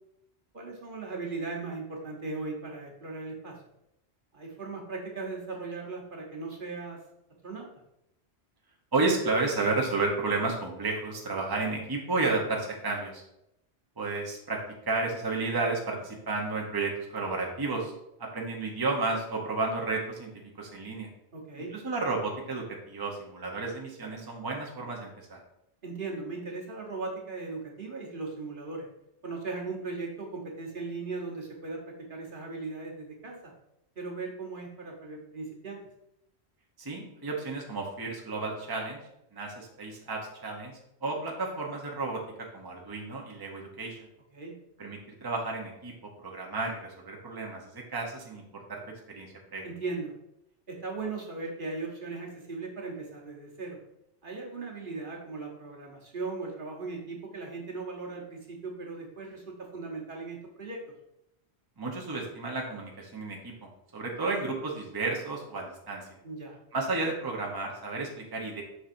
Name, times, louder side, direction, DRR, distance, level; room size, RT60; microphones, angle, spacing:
voice 1, 0.5-3.6 4.3-7.0 7.4-7.7 21.3-21.7 25.8-28.9 29.2-33.5 34.0-35.8 44.3-44.5 49.6-50.1 50.7-53.8 54.2-60.8 66.2-66.6, right 3 dB, 50° right, -1 dB, 1.3 m, -38 dB
voice 2, 8.9-13.2 14.0-14.6 14.9-17.9 18.2-20.3 20.6-21.1 21.7-25.4 36.8-39.0 39.3-40.7 41.0-42.2 42.5-44.0 44.8-45.9 46.2-48.8 49.1-49.7 61.8-66.1 66.7-68.6, right 3 dB, 20° right, -1 dB, 0.9 m, -32 dB
7.0 x 5.8 x 2.6 m, 0.82 s
omnidirectional pair, 1.1 m